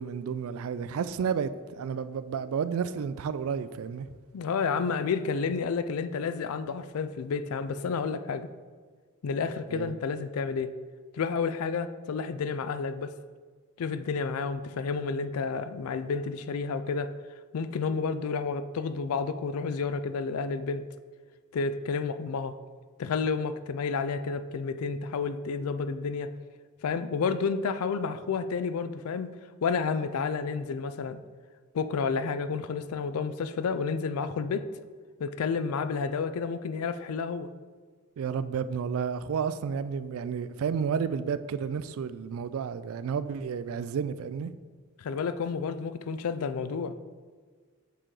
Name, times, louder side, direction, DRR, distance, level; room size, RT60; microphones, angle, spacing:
voice 1, 0.0-1.5 1.8-4.1 9.7-9.9 38.2-44.5, right 6 dB, 70° right, 0.3 m, -31 dB
voice 2, 4.3-8.5 9.2-10.8 11.1-13.1 13.8-17.1 17.5-20.8 21.5-22.5 23.0-26.3 26.8-29.3 29.6-31.2 31.7-34.7 35.2-37.5 45.0-47.0, left 5 dB, 85° left, 0.4 m, -30 dB
6.8 x 3.7 x 4.7 m
head